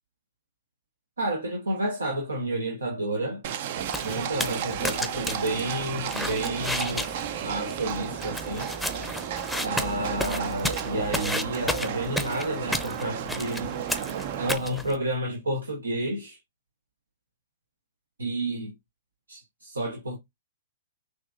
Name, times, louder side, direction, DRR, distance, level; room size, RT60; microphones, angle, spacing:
voice 1, 1.2-3.4 4.0-8.7 9.6-13.7 14.4-16.4 18.2-18.7 19.3-20.2, right 1 dB, 90° right, 1.2 m, -30 dB
Livestock farm animals working animals, 3.4-14.5, right 9 dB, 55° right, 0.5 m, -33 dB
sound 1, 3.8-15.0, left 1 dB, ahead, 0.6 m, -34 dB
6.2 x 2.9 x 2.4 m
hypercardioid pair, 120°, 0 cm